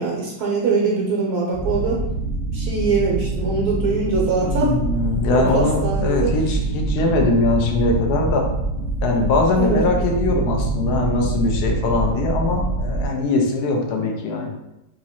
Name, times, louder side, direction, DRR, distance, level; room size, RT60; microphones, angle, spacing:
voice 1, 0.0-2.1 2.5-4.8 5.3-6.4 9.6-9.9, right 4 dB, 65° right, -2 dB, 1.2 m, -22 dB
sound 1, 1.5-13.1, right 2 dB, 20° left, 0.7 m, -25 dB
voice 2, 4.4-8.5 9.0-14.5, left 3 dB, 65° left, 1 dB, 1.2 m, -21 dB
3.7 x 3.0 x 4.2 m, 0.90 s
omnidirectional pair, 2.0 m